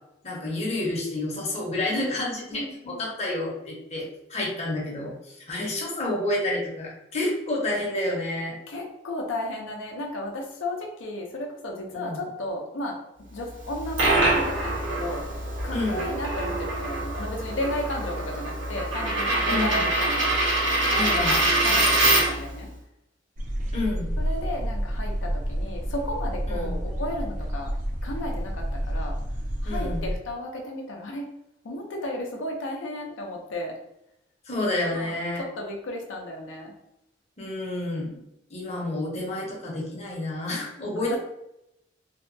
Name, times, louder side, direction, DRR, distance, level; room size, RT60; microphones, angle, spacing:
voice 1, 0.2-8.6 11.9-12.2 15.7-16.0 19.5-19.8 20.9-21.4 23.7-24.1 26.5-26.8 29.7-30.0 34.5-35.4 37.4-38.1 38.5-41.2, left 1 dB, 35° left, -3 dB, 0.7 m, -29 dB
voice 2, 2.5-3.1 8.7-13.0 13.3-15.2 15.6-20.3 20.8-22.7 24.2-27.7 28.0-29.2 29.6-31.3 31.6-33.7 34.9-36.7 38.1-38.2 41.1-41.2, left 1 dB, 90° left, 0 dB, 0.5 m, -34 dB
Coin (dropping), 13.6-22.5, right 2 dB, 75° right, 0.8 m, -24 dB
sound 1, 23.4-30.2, equal, 40° right, 0.4 m, -29 dB
2.7 x 2.2 x 2.5 m, 0.83 s
head